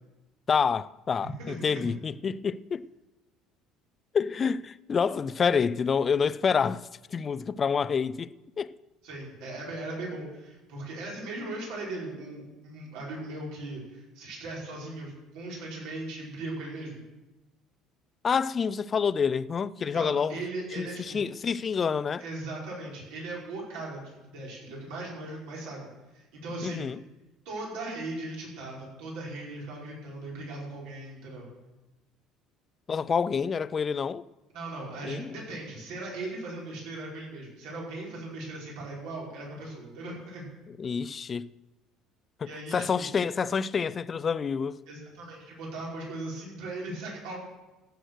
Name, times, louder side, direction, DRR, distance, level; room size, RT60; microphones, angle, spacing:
voice 1, 0.5-2.8 4.1-8.3 8.6-8.7 18.2-20.4 20.8-22.2 26.6-27.0 32.9-34.2 35.0-35.4 40.7-41.5 42.4-44.8, left 6 dB, 25° left, 0.3 m, -28 dB
voice 2, 1.2-1.9 9.0-17.0 19.8-21.2 22.2-25.9 26.1-26.9 27.5-31.5 34.5-40.5 42.4-43.1 44.9-47.4, right 2 dB, 75° right, 5.6 m, -38 dB
15.0 x 8.0 x 6.4 m
cardioid pair, 160°, 0 cm